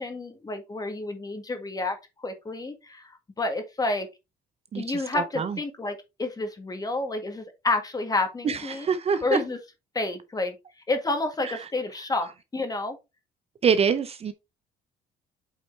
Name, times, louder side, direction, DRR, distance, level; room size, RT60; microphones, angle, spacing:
voice 1, 0.0-2.0 2.2-3.0 3.4-4.1 4.8-8.9 9.2-9.6 10.0-10.5 10.9-13.0, left 2 dB, 20° left, 1.8 m, -29 dB
voice 2, 5.1-5.5 8.4-9.4 13.6-14.3, right 6 dB, 35° right, 0.6 m, -25 dB
8.3 x 4.3 x 3.3 m
cardioid pair, 110°, 17 cm